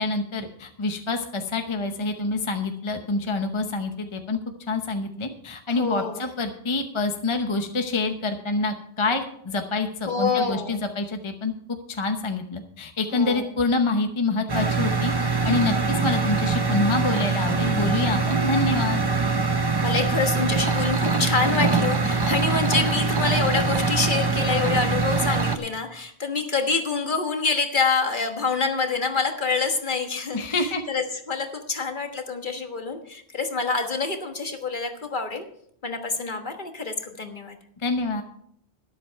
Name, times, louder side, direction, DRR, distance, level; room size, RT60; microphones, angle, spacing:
voice 1, 0.0-4.4 4.7-11.5 11.9-19.0 30.3-30.8 37.8-38.2, left 3 dB, 30° left, 5 dB, 0.9 m, -26 dB
voice 2, 5.7-6.2 10.1-10.8 13.1-13.5 19.8-35.4 35.8-37.6, left 4 dB, 50° left, 5 dB, 1.5 m, -26 dB
sound 1, 14.5-25.6, right 4 dB, 25° right, 0.8 m, -23 dB
12.5 x 10.5 x 4.6 m, 0.68 s
omnidirectional pair, 1.1 m